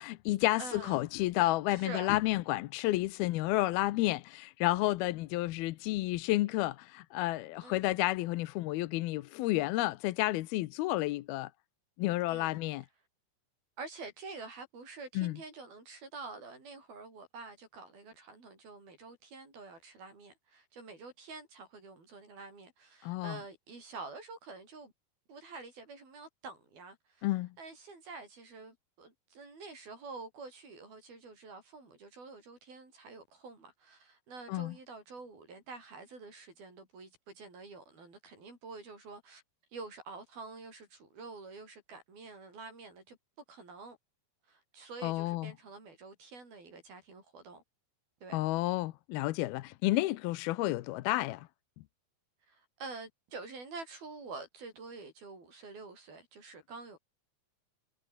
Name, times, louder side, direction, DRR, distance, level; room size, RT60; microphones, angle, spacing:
voice 1, 0.0-11.5 12.0-12.8 15.2-15.4 23.0-23.4 27.2-27.5 34.5-34.7 45.0-45.5 48.3-51.5, left 18 dB, 75° left, 2.5 m, -31 dB
voice 2, 0.6-1.2 1.7-2.1 7.6-7.9 12.3-12.6 13.8-24.9 25.3-27.3 27.6-39.4 39.7-43.2 43.5-44.0 44.5-47.6 48.2-48.4 52.5-57.0, right 3 dB, 60° right, 9.9 m, -47 dB
omnidirectional pair, 4.8 m